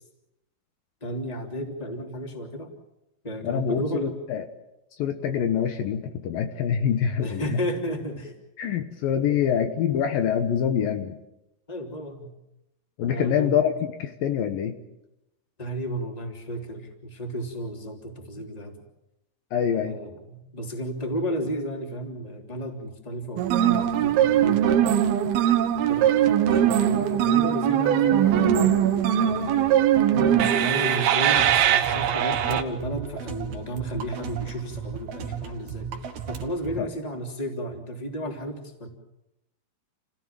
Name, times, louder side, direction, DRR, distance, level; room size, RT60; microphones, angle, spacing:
voice 1, 1.0-2.7 3.2-4.2 7.2-8.4 9.2-9.4 11.7-12.3 13.1-13.6 15.6-18.7 19.7-25.0 25.7-28.8 29.2-35.9 36.3-38.9, equal, 10° left, 2 dB, 2.8 m, -33 dB
voice 2, 3.4-4.4 5.0-7.6 8.6-11.2 13.0-13.7 14.0-14.8 19.5-20.0, left 8 dB, 70° left, 7 dB, 2.8 m, -25 dB
sound 1, 23.4-32.6, right 10 dB, 75° right, 3.0 m, -21 dB
sound 2, 31.3-36.8, right 7 dB, 55° right, 2.5 m, -35 dB
29.0 x 17.5 x 7.6 m, 0.89 s
omnidirectional pair, 4.5 m